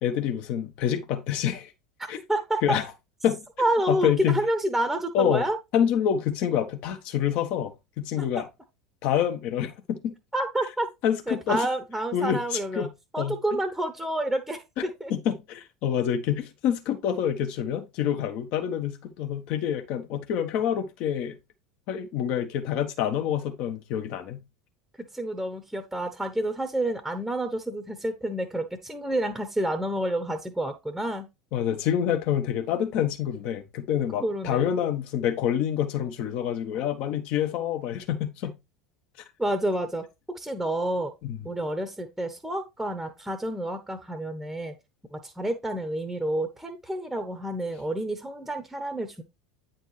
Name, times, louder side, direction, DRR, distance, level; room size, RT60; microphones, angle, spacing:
voice 1, 0.0-1.7 2.1-2.2 2.6-2.9 3.2-3.4 3.9-4.4 5.1-5.4 5.7-8.5 9.0-10.1 11.0-11.7 12.1-12.9 13.2-13.6 14.8-21.4 21.9-24.4 31.5-38.6 41.2-41.4, left 9 dB, 50° left, 1.2 m, -27 dB
voice 2, 2.3-2.8 3.6-5.6 8.2-8.3 10.3-10.9 11.3-12.9 13.1-15.1 25.0-31.3 34.2-34.8 39.4-40.0 40.3-41.1 41.4-44.7 45.1-49.2, right 1 dB, 5° right, 1.0 m, -29 dB
9.2 x 4.5 x 3.2 m
figure-of-eight pair, 75°, 3 cm